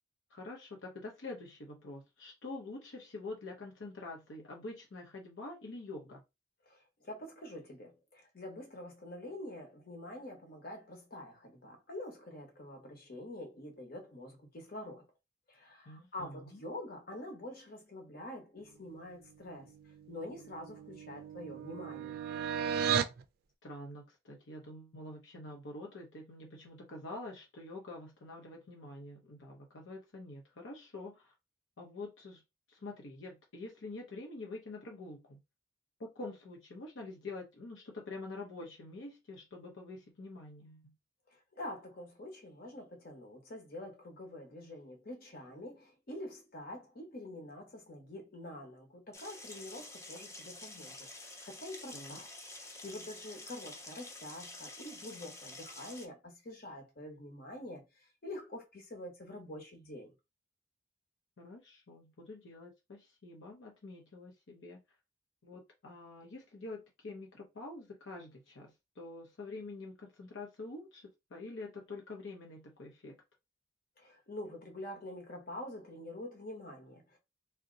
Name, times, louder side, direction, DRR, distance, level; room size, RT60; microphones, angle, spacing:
voice 1, 0.3-6.2 15.9-16.6 23.6-31.3 31.8-32.4 32.7-35.4 36.0-41.0 51.9-52.2 61.4-64.8 65.4-73.2, left 2 dB, 80° left, 0.7 m, -46 dB
voice 2, 6.7-15.1 15.5-19.7 20.1-22.2 41.3-52.3 52.6-60.1 74.0-77.2, left 1 dB, 50° left, 1.1 m, -46 dB
sound 1, 20.0-23.2, right 8 dB, 55° right, 0.4 m, -35 dB
sound 2, 49.1-56.1, left 2 dB, 15° left, 0.5 m, -49 dB
2.7 x 2.1 x 3.8 m
head